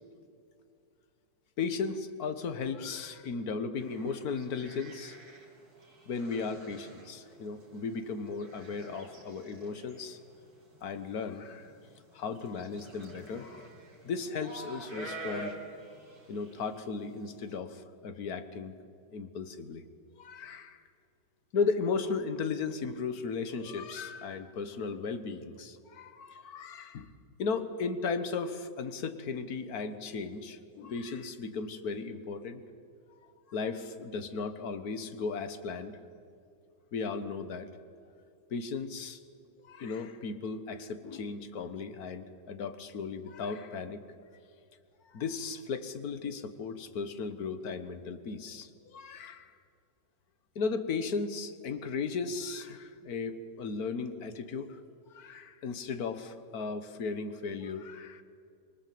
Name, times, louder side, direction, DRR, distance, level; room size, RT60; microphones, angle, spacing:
voice 1, 1.6-5.2 6.1-10.2 10.8-11.7 12.1-13.7 14.1-15.6 16.3-18.7 19.1-19.8 20.2-20.8 21.5-27.1 27.4-32.6 33.5-36.0 36.9-37.7 38.5-39.2 39.6-44.0 45.1-49.5 50.6-54.8 55.1-58.2, left 4 dB, 50° left, 10 dB, 1.7 m, -36 dB
sound 1, 3.8-17.6, right 2 dB, 45° right, 4.3 m, -49 dB
25.5 x 23.0 x 7.8 m, 2.4 s
omnidirectional pair, 2.2 m